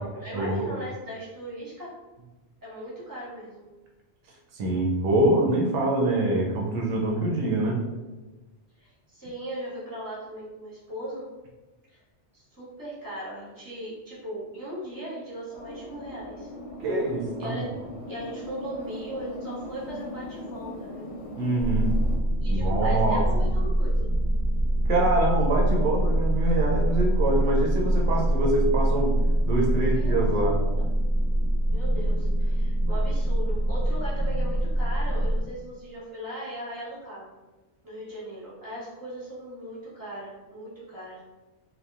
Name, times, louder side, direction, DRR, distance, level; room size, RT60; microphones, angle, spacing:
voice 1, 0.0-1.9 2.6-3.6 8.8-11.3 11.9-12.0 12.3-16.5 17.4-17.7 18.1-21.1 22.4-24.1 29.6-30.9 31.7-37.3 37.8-41.2, right 1 dB, 20° right, -9 dB, 0.9 m, -38 dB
voice 2, 4.5-7.8 16.8-17.6 21.4-21.9 22.5-23.2 24.9-29.2 29.4-30.6, right 2 dB, 80° right, -2 dB, 0.9 m, -25 dB
sound 1, 15.5-22.2, left 1 dB, 80° left, 0.9 m, -39 dB
sound 2, 21.6-35.4, right 1 dB, 55° left, 0.5 m, -24 dB
2.8 x 2.2 x 2.3 m, 1.2 s
omnidirectional pair, 1.2 m